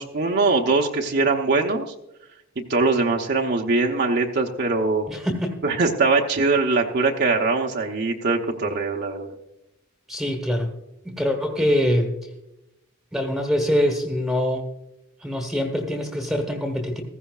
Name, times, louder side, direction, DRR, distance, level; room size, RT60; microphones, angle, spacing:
voice 1, 0.0-1.9 2.6-5.1 5.6-9.3, right 3 dB, 55° right, 1 dB, 0.9 m, -22 dB
voice 2, 5.1-5.6 10.1-10.7 11.0-12.3 13.1-14.7 15.2-17.0, equal, ahead, 2 dB, 1.2 m, -24 dB
15.5 x 14.5 x 2.4 m, 0.88 s
head